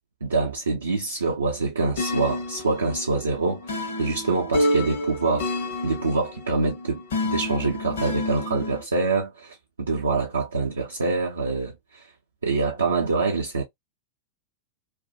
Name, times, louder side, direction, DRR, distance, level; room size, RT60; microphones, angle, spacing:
voice 1, 0.2-5.5 5.8-12.1 12.4-13.6, right 3 dB, 75° right, 0.5 m, -25 dB
sound 1, 2.0-8.8, left 1 dB, 55° left, 0.7 m, -29 dB
2.3 x 2.1 x 2.5 m
figure-of-eight pair, 90°, 0 cm